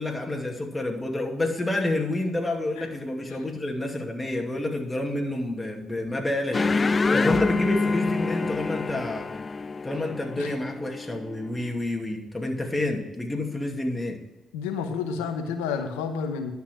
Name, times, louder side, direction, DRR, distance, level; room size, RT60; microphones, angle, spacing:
voice 1, 0.0-6.8 7.1-9.3 9.8-14.2, left 2 dB, 20° left, 1 dB, 2.5 m, -29 dB
sound 1, 6.5-11.5, left 3 dB, 35° left, 0.3 m, -26 dB
voice 2, 14.5-16.5, left 6 dB, 90° left, 7 dB, 0.9 m, -30 dB
11.0 x 5.8 x 6.0 m, 0.97 s
hypercardioid pair, 50°, 0 cm